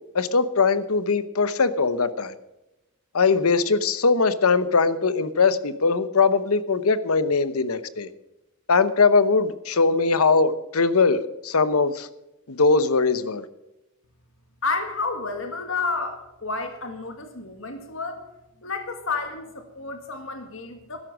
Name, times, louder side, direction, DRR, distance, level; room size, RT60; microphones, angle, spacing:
voice 1, 0.1-2.3 3.1-8.1 8.7-12.1 12.5-13.4, left 4 dB, 80° left, 14 dB, 0.9 m, -21 dB
voice 2, 14.6-18.2 18.6-21.0, left 3 dB, 60° left, 6 dB, 1.8 m, -30 dB
13.0 x 11.0 x 6.2 m, 0.95 s
head